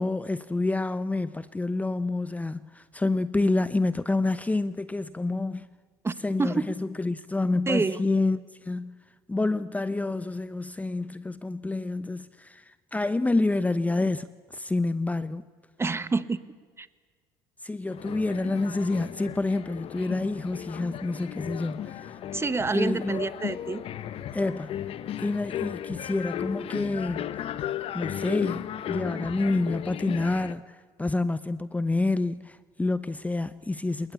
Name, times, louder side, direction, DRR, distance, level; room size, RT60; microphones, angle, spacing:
voice 1, 0.0-5.7 6.2-8.9 9.3-15.4 17.6-22.2 22.7-23.2 24.3-24.8 25.2-27.3 27.9-34.1, left 2 dB, 10° left, 0.8 m, -28 dB
voice 2, 6.4-6.7 7.7-8.0 15.8-16.4 16.8-16.9 22.3-23.8, right 4 dB, 20° right, 1.4 m, -27 dB
sound 1, 17.9-30.5, left 11 dB, 55° left, 1.2 m, -35 dB
29.5 x 20.0 x 8.5 m
hypercardioid pair, 75°, 12 cm